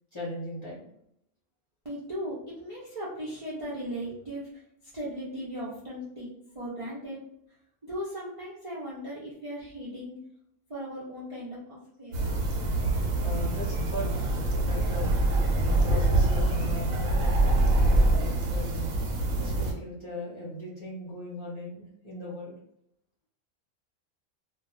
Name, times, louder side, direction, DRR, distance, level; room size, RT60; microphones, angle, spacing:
voice 1, 0.1-0.9 13.2-14.1 14.6-15.2 15.8-18.9 19.4-22.5, equal, 30° left, -7 dB, 0.6 m, -38 dB
voice 2, 1.8-4.5 4.9-6.3 6.5-7.2 7.8-10.2 10.7-12.3, equal, 40° right, -8 dB, 0.5 m, -37 dB
sound 1, 12.1-19.7, right 2 dB, 85° right, 1.0 m, -25 dB
2.4 x 2.2 x 3.0 m, 0.75 s
omnidirectional pair, 1.4 m